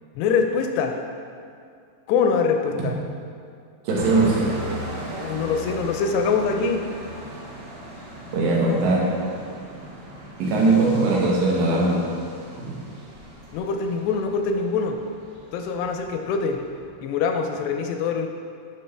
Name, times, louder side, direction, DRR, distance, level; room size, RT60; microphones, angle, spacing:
voice 1, 0.2-1.0 2.1-2.9 5.2-6.8 13.5-15.0 15.5-16.6 17.0-18.3, left 5 dB, 85° left, 4 dB, 2.5 m, -24 dB
sound 1, 3.9-16.8, equal, 65° right, 1.2 m, -38 dB
voice 2, 3.9-4.4 8.3-9.1 10.4-12.0 12.6-12.7, right 3 dB, 85° right, -4 dB, 3.6 m, -20 dB
9.7 x 5.8 x 3.3 m, 2.3 s
omnidirectional pair, 4.9 m